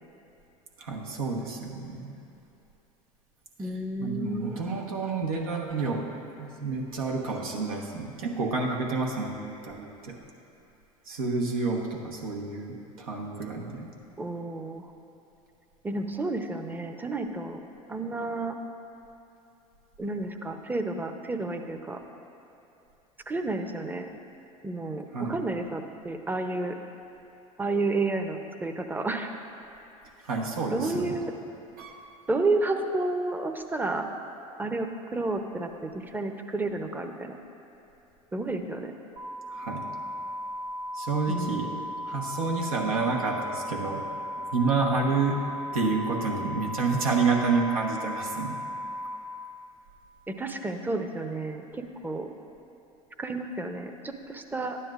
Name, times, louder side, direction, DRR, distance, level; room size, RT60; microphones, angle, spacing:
voice 1, 0.8-2.1 4.0-6.1 6.4-10.2 11.1-13.9 25.1-25.4 30.2-31.2 31.8-32.0 39.5-39.9 40.9-41.7 42.1-44.0 44.5-45.4 45.7-48.6, right 4 dB, 85° right, -1 dB, 1.2 m, -29 dB
voice 2, 3.6-4.6 14.2-14.9 15.8-17.6 17.9-18.6 20.0-22.0 23.3-24.1 24.6-26.8 27.6-29.3 30.7-31.3 32.3-34.1 34.6-37.4 38.3-38.9 41.3-41.8 50.3-52.3 53.2-54.8, right 2 dB, 10° right, 6 dB, 0.7 m, -31 dB
sound 1, 39.2-49.2, equal, 60° right, 2.1 m, -36 dB
12.0 x 9.8 x 2.5 m, 2.9 s
hypercardioid pair, 85°, 18 cm